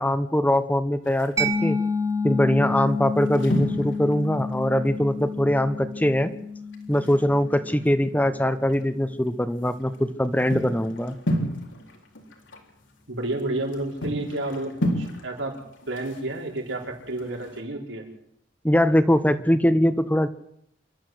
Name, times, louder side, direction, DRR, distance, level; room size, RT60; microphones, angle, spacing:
voice 1, 0.0-1.8 2.2-6.3 6.9-11.1 18.6-20.3, equal, 10° left, 11 dB, 0.9 m, -22 dB
sound 1, 1.0-1.6 2.3-2.5 2.8-5.5 5.8-5.9 6.2-6.3 6.7-8.8 9.3-17.6, equal, 90° left, 3.7 m, -33 dB
Mallet percussion, 1.4-8.8, left 3 dB, 20° right, 2.4 m, -30 dB
voice 2, 13.1-15.6 15.9-18.1, right 2 dB, 85° right, 1 dB, 5.5 m, -30 dB
27.5 x 12.5 x 7.9 m, 0.71 s
head